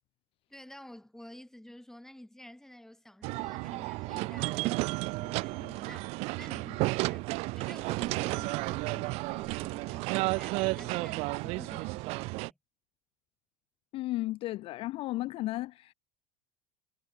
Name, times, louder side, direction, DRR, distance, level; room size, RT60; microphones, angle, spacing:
voice 1, 0.5-12.6, left 1 dB, 5° left, 2.7 m, -51 dB
sound 1, 3.2-12.5, right 24 dB, 55° right, 0.5 m, -32 dB
voice 2, 13.9-15.9, left 17 dB, 45° left, 0.4 m, -34 dB
figure-of-eight pair, 65°, 13 cm